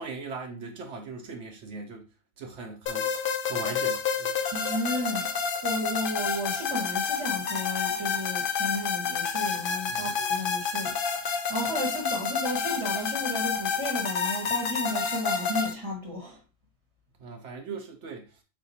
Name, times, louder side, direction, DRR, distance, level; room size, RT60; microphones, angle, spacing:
voice 1, 0.0-2.1 2.4-4.4 9.9-10.1 17.2-18.4, right 4 dB, 75° right, 0.9 m, -39 dB
sound 1, 2.9-15.7, left 6 dB, 55° left, 0.6 m, -29 dB
voice 2, 4.5-16.4, left 1 dB, 25° right, 0.9 m, -33 dB
4.3 x 2.1 x 4.0 m
omnidirectional pair, 1.2 m